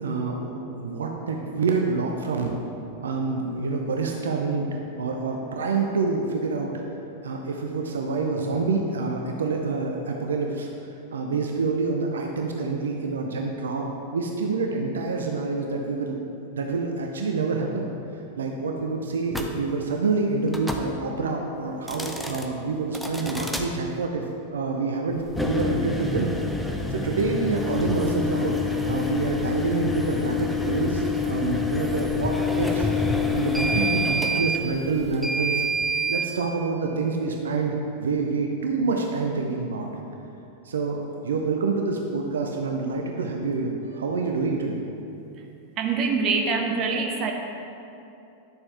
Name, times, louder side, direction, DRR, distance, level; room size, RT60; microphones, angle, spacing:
voice 1, 0.0-2.6 3.0-4.7 5.0-6.7 7.2-10.7 11.1-16.2 16.5-17.9 18.4-24.2 24.5-26.3 26.9-28.5 28.8-32.9 33.3-35.6 36.1-39.9 40.6-44.8, right 4 dB, 65° right, 2 dB, 0.7 m, -27 dB
sound 1, 19.3-19.5 20.5-20.9 21.8-22.5 22.9-23.7 25.3-36.3, left 2 dB, ahead, 0.7 m, -27 dB
voice 2, 45.8-47.3, right 4 dB, 35° right, 2 dB, 0.9 m, -24 dB
10.5 x 6.9 x 3.4 m, 2.8 s
figure-of-eight pair, 90°, 0 cm